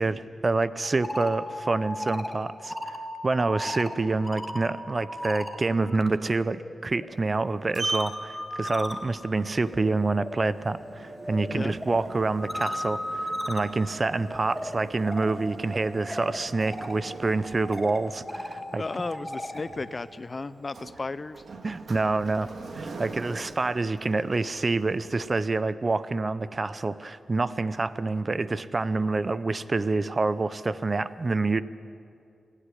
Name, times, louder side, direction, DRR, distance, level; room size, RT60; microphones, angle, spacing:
voice 1, 0.0-3.0 3.2-18.8 21.6-31.6, right 3 dB, 40° right, 16 dB, 0.7 m, -27 dB
sound 1, 0.8-6.1 6.4-19.7, left 1 dB, 10° left, 1.9 m, -37 dB
Sliding door, 7.2-25.4, right 3 dB, 60° right, 1.8 m, -42 dB
voice 2, 18.7-21.4, left 3 dB, 35° left, 16 dB, 0.5 m, -34 dB
27.0 x 10.0 x 9.9 m, 2.5 s
cardioid pair, 70°, 0 cm